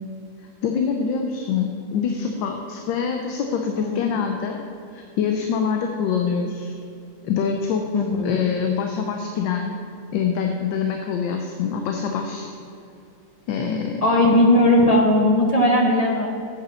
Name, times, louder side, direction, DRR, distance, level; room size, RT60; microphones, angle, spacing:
voice 1, 0.6-4.6 4.9-6.8 7.2-9.8 10.1-12.5 13.5-14.0, left 6 dB, 80° left, 3 dB, 1.4 m, -25 dB
voice 2, 7.9-8.3 14.0-16.3, left 1 dB, 40° left, 0 dB, 0.5 m, -17 dB
8.0 x 5.8 x 7.0 m, 2.5 s
omnidirectional pair, 2.0 m